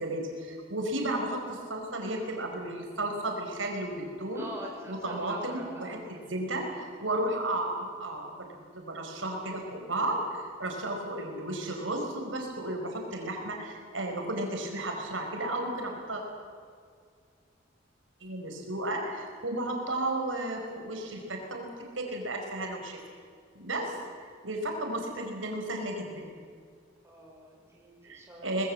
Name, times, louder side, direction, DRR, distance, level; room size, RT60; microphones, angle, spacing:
voice 1, 0.0-4.5 4.9-16.2 18.2-21.7 22.0-23.0 23.5-23.9 24.4-26.3 28.0-28.6, right 1 dB, 90° right, 1 dB, 5.1 m, -33 dB
voice 2, 4.3-6.2 27.0-28.7, right 1 dB, 15° right, -2 dB, 5.7 m, -45 dB
24.5 x 20.5 x 7.9 m, 2.1 s
head